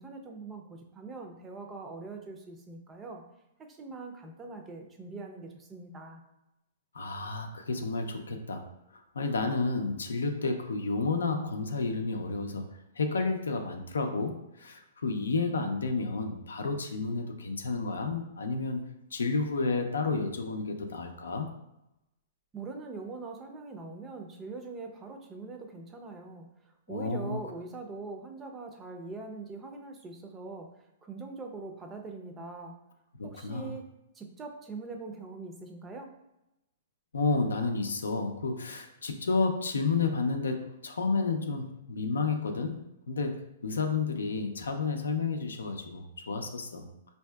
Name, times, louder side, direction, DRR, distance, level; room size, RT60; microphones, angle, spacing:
voice 1, 0.0-3.2 3.7-6.2 22.5-26.5 26.9-30.7 31.0-32.7 33.2-33.9 34.1-36.1, right 3 dB, 20° right, 4 dB, 0.5 m, -42 dB
voice 2, 6.9-8.6 9.1-12.6 13.0-21.5 26.9-27.4 33.4-33.7 37.1-46.9, left 3 dB, 90° left, 4 dB, 0.5 m, -31 dB
4.5 x 2.6 x 2.2 m, 0.89 s
hypercardioid pair, 130°, 0 cm